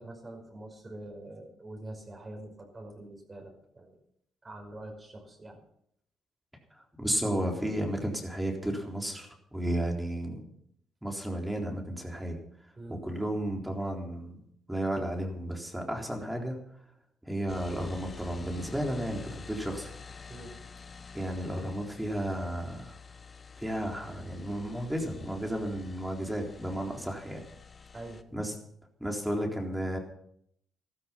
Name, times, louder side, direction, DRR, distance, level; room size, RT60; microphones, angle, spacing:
voice 1, 0.0-4.0 4.4-5.6 12.8-13.0 20.3-20.5 27.9-28.2, right 1 dB, 30° right, 2 dB, 5.4 m, -45 dB
voice 2, 7.0-10.4 11.0-12.4 13.0-14.4 14.7-16.6 17.3-19.9 21.1-23.0 23.6-27.4 28.3-28.5 29.0-30.0, right 1 dB, 5° right, 1 dB, 3.8 m, -33 dB
sound 1, 17.5-28.2, left 5 dB, 35° left, 1.2 m, -48 dB
14.0 x 13.5 x 5.8 m, 0.71 s
cardioid pair, 90°, 0 cm